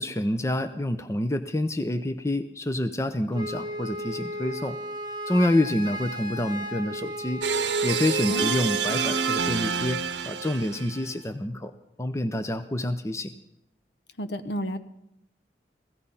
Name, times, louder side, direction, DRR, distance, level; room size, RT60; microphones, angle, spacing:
voice 1, 0.0-4.8 5.3-7.4 7.8-11.7 12.0-13.3, left 1 dB, 15° left, 9 dB, 0.6 m, -27 dB
Wind instrument woodwind instrument, 3.3-9.6, equal, 25° right, 1.2 m, -35 dB
sound 1, 7.4-11.1, right 6 dB, 75° right, 0.8 m, -28 dB
voice 2, 8.3-8.6 14.2-14.8, left 1 dB, 70° left, 10 dB, 1.0 m, -31 dB
16.5 x 16.0 x 5.6 m, 0.80 s
head